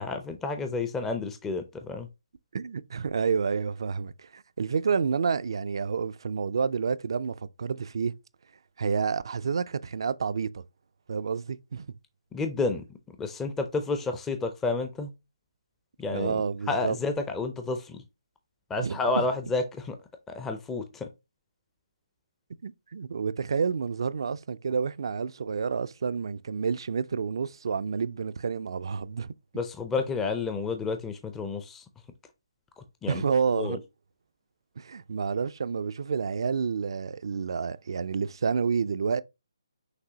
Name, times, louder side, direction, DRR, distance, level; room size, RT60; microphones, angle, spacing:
voice 1, 0.0-2.1 12.3-15.1 16.0-18.0 18.7-20.0 20.3-21.1 29.5-31.8 33.0-33.2 33.5-33.8, left 3 dB, 10° left, 0.4 m, -30 dB
voice 2, 2.5-8.1 8.8-10.6 11.1-11.9 16.1-17.0 18.8-19.3 22.6-29.3 33.1-33.8 34.8-39.2, right 5 dB, 60° right, 0.3 m, -29 dB
6.0 x 2.7 x 2.7 m
figure-of-eight pair, 150°, 3 cm